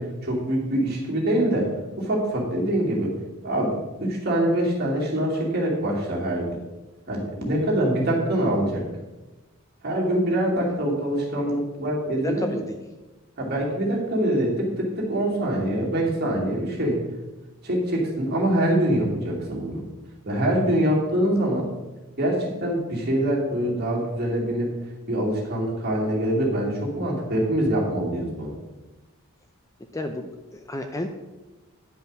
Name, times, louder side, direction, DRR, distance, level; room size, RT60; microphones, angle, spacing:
voice 1, 0.0-1.7 2.0-3.2 3.4-6.6 7.1-8.9 9.8-12.6 13.4-17.0 17.6-19.9 20.2-21.7 22.2-24.7 25.1-28.5, right 1 dB, 45° right, -3 dB, 2.6 m, -24 dB
voice 2, 12.2-12.8 29.9-31.1, left 1 dB, 15° left, 5 dB, 0.5 m, -32 dB
10.0 x 5.5 x 6.0 m, 1.1 s
head